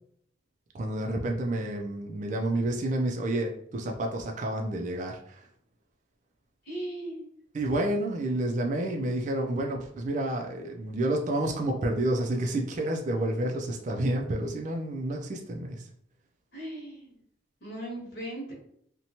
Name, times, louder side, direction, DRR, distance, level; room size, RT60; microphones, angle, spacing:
voice 1, 0.7-5.5 7.5-15.9, right 1 dB, 40° right, 2 dB, 0.3 m, -29 dB
voice 2, 6.7-7.3 16.5-17.2 17.6-18.5, right 1 dB, 60° left, -4 dB, 1.1 m, -38 dB
2.7 x 2.2 x 2.8 m, 0.68 s
head